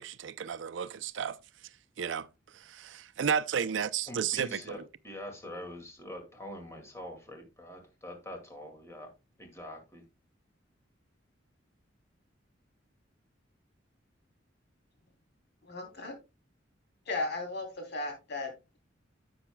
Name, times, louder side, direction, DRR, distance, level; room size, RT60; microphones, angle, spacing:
voice 1, 0.0-1.4 2.0-2.3 2.5-4.9, right 7 dB, 70° right, 0.5 m, -33 dB
voice 2, 4.1-9.1 9.4-10.0, left 1 dB, 15° left, 2.2 m, -44 dB
voice 3, 15.6-16.1 17.1-18.8, left 2 dB, 60° left, 3.1 m, -36 dB
10.0 x 8.0 x 2.2 m
head